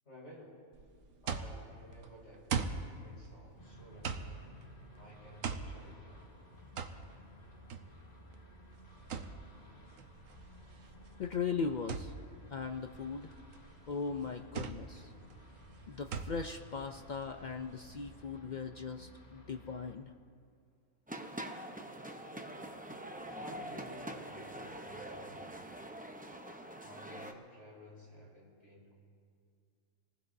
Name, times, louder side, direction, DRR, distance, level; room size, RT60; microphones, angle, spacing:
voice 1, 0.0-0.6 1.2-4.6 5.0-6.3 23.3-25.8 26.8-28.9, equal, 55° left, -5 dB, 5.2 m, -54 dB
sound 1, 0.7-18.0, right 5 dB, 70° right, 1.2 m, -42 dB
sound 2, 3.6-20.0, left 1 dB, 30° left, 1.2 m, -57 dB
voice 2, 11.2-12.1 12.5-13.3 13.9-15.1 15.9-20.1, left 5 dB, 70° left, 5 dB, 0.4 m, -38 dB
sound 3, 21.1-27.3, right 1 dB, 10° right, 0.5 m, -44 dB
27.5 x 19.5 x 2.7 m, 2.2 s
omnidirectional pair, 1.5 m